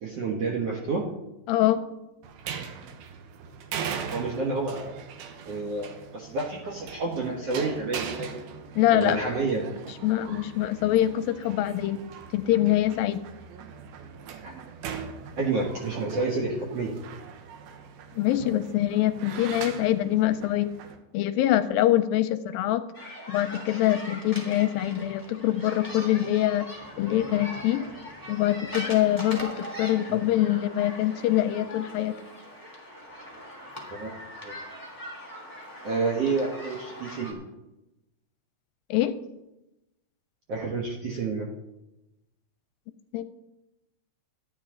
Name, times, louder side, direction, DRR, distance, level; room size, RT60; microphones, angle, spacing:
voice 1, 0.0-1.0 4.1-4.9 5.5-8.4 8.9-9.6 14.4-14.5 15.4-16.9 30.1-30.2 33.9-34.1 34.4-34.6 35.8-37.4 40.5-41.5, right 3 dB, 60° right, -2 dB, 1.8 m, -29 dB
voice 2, 1.5-1.9 8.8-9.3 10.0-12.0 12.3-13.2 18.2-20.8 21.1-22.9 23.3-26.7 27.0-27.9 28.3-32.2 38.9-39.2 43.1-43.2, left 13 dB, 80° left, 11 dB, 2.2 m, -24 dB
sound 1, 2.2-21.0, right 7 dB, 80° right, 2.8 m, -40 dB
sound 2, 22.9-37.3, equal, 5° right, 2.0 m, -41 dB
13.5 x 10.5 x 3.8 m, 0.94 s
omnidirectional pair, 4.4 m